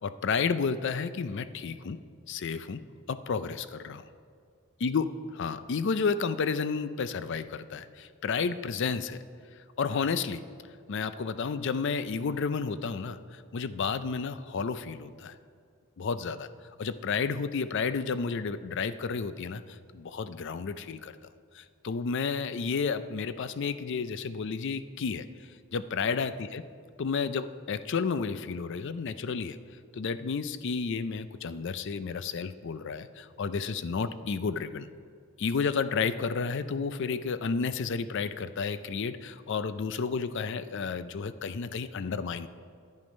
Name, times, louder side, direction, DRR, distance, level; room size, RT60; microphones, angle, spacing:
voice 1, 0.0-2.0 2.3-2.8 3.1-4.0 4.8-5.0 5.4-9.2 9.8-10.4 10.9-15.3 16.0-16.5 16.8-21.1 21.5-25.3 25.7-26.6 27.0-29.6 29.9-34.9 35.4-42.5, left 5 dB, 55° left, 13 dB, 0.5 m, -31 dB
10.5 x 9.7 x 5.3 m, 2.3 s
head